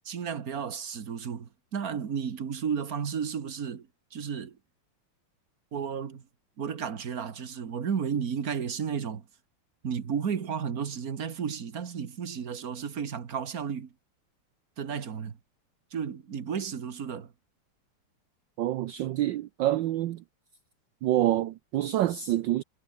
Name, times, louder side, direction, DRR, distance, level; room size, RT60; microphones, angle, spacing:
voice 1, 0.1-4.6 5.7-6.2 6.6-9.3 9.8-13.9 14.8-15.4 15.9-17.3, right 7 dB, 45° right, 1.8 m, -33 dB
voice 2, 18.6-20.2 21.0-22.6, right 13 dB, 70° right, 1.2 m, -27 dB
omnidirectional pair, 2.4 m